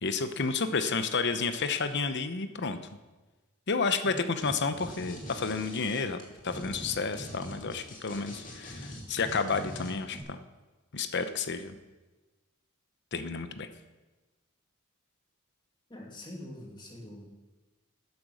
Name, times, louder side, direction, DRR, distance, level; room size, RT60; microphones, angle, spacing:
voice 1, 0.0-2.8 3.7-6.2 6.4-10.4 10.9-11.8 13.1-13.7, left 4 dB, 55° left, 10 dB, 0.9 m, -31 dB
sound 1, 4.4-4.5 4.8-10.2, equal, 40° left, 2.6 m, -43 dB
voice 2, 15.9-17.3, left 1 dB, 20° left, -2 dB, 2.6 m, -44 dB
12.0 x 9.5 x 6.4 m, 1.2 s
head